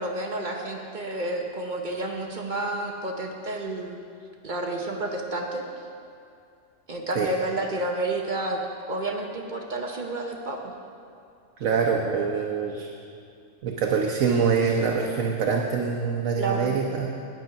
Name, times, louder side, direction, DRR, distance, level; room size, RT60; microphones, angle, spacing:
voice 1, 0.0-4.0 4.4-5.6 6.9-8.6 8.9-10.7 16.4-16.8, right 2 dB, 40° right, 2 dB, 0.9 m, -30 dB
voice 2, 11.6-12.9 13.6-17.1, right 6 dB, 90° right, 0 dB, 1.2 m, -24 dB
9.3 x 9.2 x 5.8 m, 2.4 s
omnidirectional pair, 1.3 m